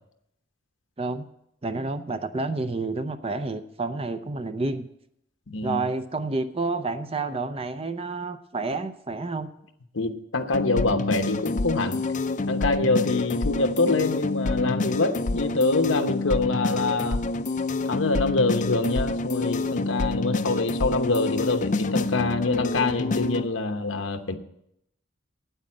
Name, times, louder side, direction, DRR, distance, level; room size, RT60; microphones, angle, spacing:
voice 1, 1.6-4.9 5.6-9.5, right 3 dB, 30° right, 10 dB, 0.6 m, -29 dB
voice 2, 5.5-5.8 9.9-12.0 12.5-17.2 17.8-24.4, left 3 dB, 90° left, 7 dB, 1.0 m, -25 dB
sound 1, 10.5-23.5, left 2 dB, 40° left, 0.5 m, -28 dB
9.0 x 8.7 x 7.4 m, 0.79 s
head